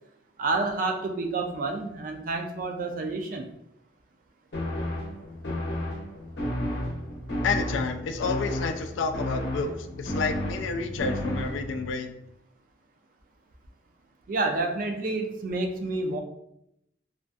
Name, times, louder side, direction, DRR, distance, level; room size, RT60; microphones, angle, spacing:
voice 1, 0.4-3.5 14.3-16.2, right 3 dB, 45° right, 5 dB, 0.3 m, -29 dB
sound 1, 4.5-11.9, left 1 dB, 65° left, 0.7 m, -32 dB
voice 2, 7.4-12.1, left 4 dB, 90° left, 7 dB, 0.3 m, -30 dB
2.5 x 2.3 x 2.3 m, 0.78 s
head